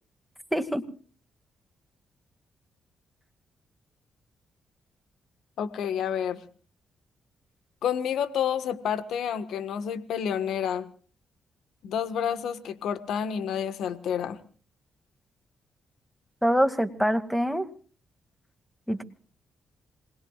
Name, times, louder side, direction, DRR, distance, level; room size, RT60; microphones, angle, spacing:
voice 1, 0.5-0.8 16.4-17.7 18.9-19.0, equal, ahead, 7 dB, 2.2 m, -24 dB
voice 2, 5.6-6.4 7.8-10.9 11.8-14.4, left 8 dB, 80° left, 11 dB, 1.3 m, -29 dB
27.5 x 20.5 x 2.4 m, 0.42 s
supercardioid pair, 65°, 0 cm